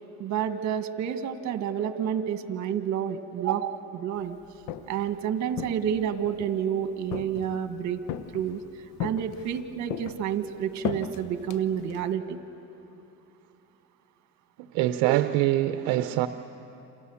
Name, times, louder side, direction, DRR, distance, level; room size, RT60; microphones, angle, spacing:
voice 1, 0.2-4.4 4.9-8.0 8.3-8.6 9.0-12.4, right 9 dB, 60° right, 9 dB, 1.6 m, -29 dB
Walk footsteps, 4.4-5.1 5.5-6.6 7.1-7.7 8.1-8.6 9.0-9.6 9.9-12.1, left 9 dB, 85° left, 1.1 m, -36 dB
voice 2, 14.7-16.3, right 14 dB, 80° right, 10 dB, 0.8 m, -24 dB
28.0 x 28.0 x 7.1 m, 3.0 s
cardioid pair, 110°, 31 cm